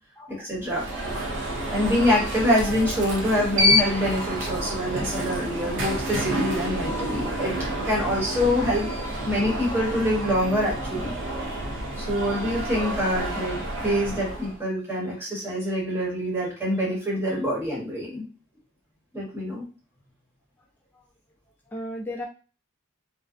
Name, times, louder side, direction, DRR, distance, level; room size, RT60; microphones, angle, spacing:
voice 1, 0.3-0.8 1.7-7.5 7.8-8.9 9.2-11.1 11.4-11.6 12.0-18.3 19.1-19.6, equal, 10° right, -6 dB, 1.0 m, -25 dB
Alarm, 0.6-14.6, equal, 60° right, 0.5 m, -29 dB
voice 2, 0.9-1.2 1.9-2.0 3.5-3.7 20.9-21.0 21.7-22.3, equal, 10° left, -2 dB, 0.5 m, -36 dB
2.6 x 2.1 x 2.4 m, 0.35 s
head